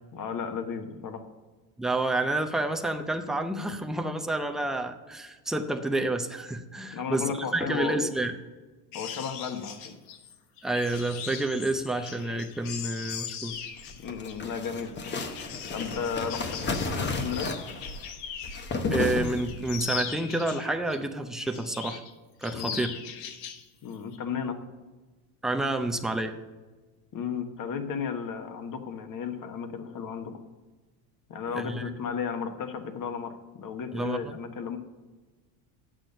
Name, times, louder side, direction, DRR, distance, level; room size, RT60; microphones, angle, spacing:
voice 1, 0.1-1.3 6.9-8.0 8.9-9.9 14.0-15.2 15.7-17.5 22.5-22.9 23.8-24.6 27.1-30.4 31.3-33.3 33.6-34.8, left 6 dB, 40° left, 7 dB, 1.2 m, -34 dB
voice 2, 1.8-8.3 10.6-13.6 18.9-22.0 22.4-22.9 25.4-26.4 31.5-31.8 33.9-34.4, right 2 dB, ahead, 5 dB, 0.5 m, -29 dB
sound 1, 8.9-18.7 19.1-21.0 21.4-22.1 22.4-23.6 23.9-24.2, left 8 dB, 75° left, 1.3 m, -40 dB
sound 2, 13.8-19.8, left 3 dB, 25° left, 0.9 m, -33 dB
8.4 x 6.3 x 6.6 m, 1.2 s
supercardioid pair, 120°, 48 cm